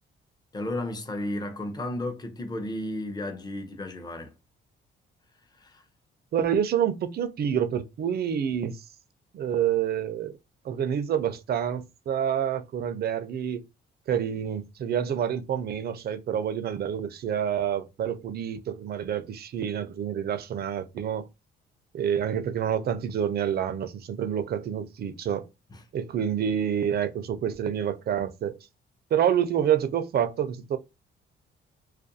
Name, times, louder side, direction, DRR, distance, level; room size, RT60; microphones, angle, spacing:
voice 1, 0.5-4.3 5.5-5.8 25.7-25.8, left 1 dB, 20° left, 0.6 m, -33 dB
voice 2, 6.3-8.8 9.3-10.4 10.6-13.6 14.1-21.3 21.9-25.5 25.9-28.6 29.1-30.8, right 9 dB, 55° right, 0.5 m, -28 dB
2.4 x 2.2 x 2.6 m
cardioid pair, 90°, 20 cm